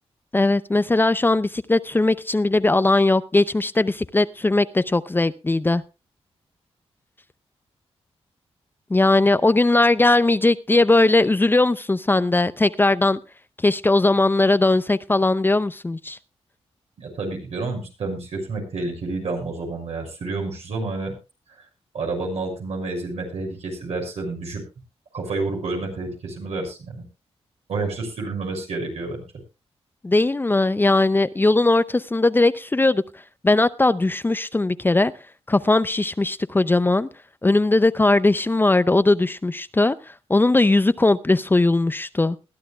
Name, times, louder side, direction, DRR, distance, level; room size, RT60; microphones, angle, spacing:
voice 1, 0.3-5.8 8.9-13.2 13.6-16.2 30.0-33.0 33.4-35.1 35.5-37.1 37.4-40.0 40.3-42.4, left 2 dB, 20° left, 0.5 m, -19 dB
voice 2, 17.0-21.1 21.9-24.6 25.1-27.0 27.7-29.2, right 3 dB, 80° right, 6.2 m, -29 dB
21.0 x 12.5 x 2.3 m
cardioid pair, 90°, 11 cm